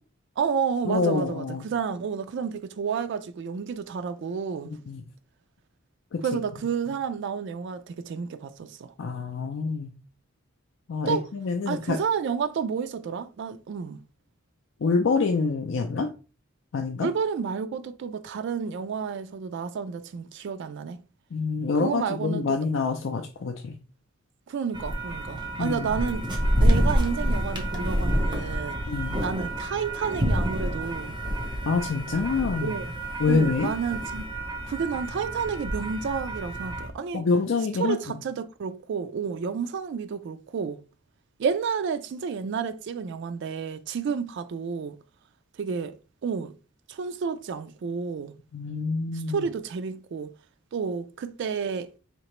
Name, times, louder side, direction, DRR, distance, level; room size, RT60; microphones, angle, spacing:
voice 1, 0.4-4.8 6.2-8.9 11.1-11.3 11.7-14.0 17.0-21.0 21.8-22.6 24.5-26.3 26.5-28.8 29.2-31.2 32.6-32.9 33.3-34.3 34.6-37.2 37.8-40.8 41.4-45.0 45.5-46.0 46.2-46.5 46.9-48.4 49.1-50.3 50.7-51.9, right 6 dB, 60° right, 0.3 m, -30 dB
voice 2, 0.9-1.6 4.6-5.0 6.1-6.2 9.0-9.9 10.9-12.0 14.8-16.1 16.7-17.1 21.3-23.8 25.6-25.9 28.9-29.2 31.6-32.7 33.2-33.7 37.1-38.0 48.5-49.5, left 4 dB, 65° left, 0.4 m, -26 dB
sound 1, 24.7-36.9, equal, 20° right, 0.8 m, -28 dB
4.3 x 2.8 x 3.0 m
head